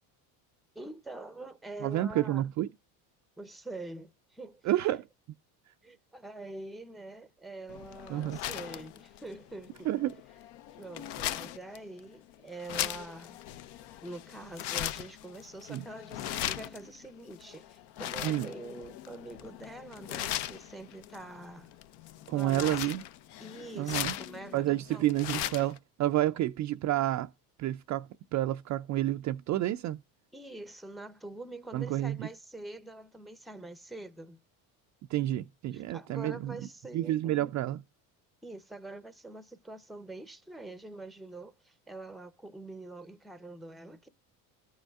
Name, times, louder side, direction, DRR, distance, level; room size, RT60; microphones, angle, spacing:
voice 1, 0.7-2.4 3.4-5.0 5.8-9.9 10.8-13.4 14.0-21.7 22.3-22.7 23.4-25.1 30.3-34.4 35.7-37.5 38.4-44.1, right 2 dB, ahead, 0.6 m, -45 dB
voice 2, 1.8-2.7 4.6-5.0 8.1-8.4 9.9-10.2 15.7-15.8 18.2-18.5 22.3-23.0 23.7-24.2 24.5-27.3 27.6-30.0 31.7-32.3 35.1-36.6 36.9-37.8, right 14 dB, 40° right, 0.4 m, -30 dB
sound 1, 7.7-25.8, left 12 dB, 65° left, 0.7 m, -39 dB
13.5 x 6.3 x 2.3 m
supercardioid pair, 95°, 44 cm